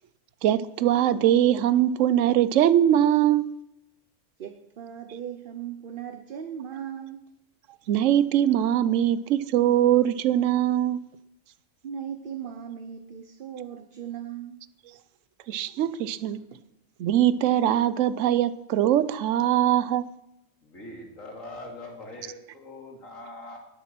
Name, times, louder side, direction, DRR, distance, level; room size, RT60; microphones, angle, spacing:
voice 1, 0.4-3.5 7.9-11.0 15.5-16.4 17.0-20.1, right 11 dB, 75° right, 16 dB, 1.0 m, -22 dB
voice 2, 4.4-7.2 11.8-14.7 16.1-16.2 16.5-16.6, right 8 dB, 50° right, 8 dB, 0.8 m, -38 dB
voice 3, 20.6-23.6, left 1 dB, 85° left, 0 dB, 3.0 m, -42 dB
18.5 x 7.2 x 6.0 m, 0.84 s
omnidirectional pair, 1.3 m